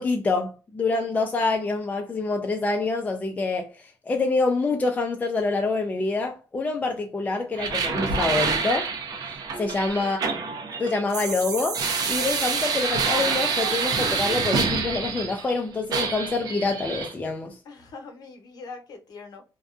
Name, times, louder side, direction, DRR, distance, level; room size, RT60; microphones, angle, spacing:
voice 1, 0.0-8.9 9.6-10.2 10.8-17.6, left 3 dB, 20° left, 0.4 m, -26 dB
sound 1, 7.6-15.6 15.9-17.1, right 5 dB, 65° right, 0.6 m, -27 dB
voice 2, 10.0-10.4 17.6-19.4, left 4 dB, 65° left, 0.9 m, -43 dB
2.6 x 2.2 x 2.3 m
cardioid pair, 120°, 7 cm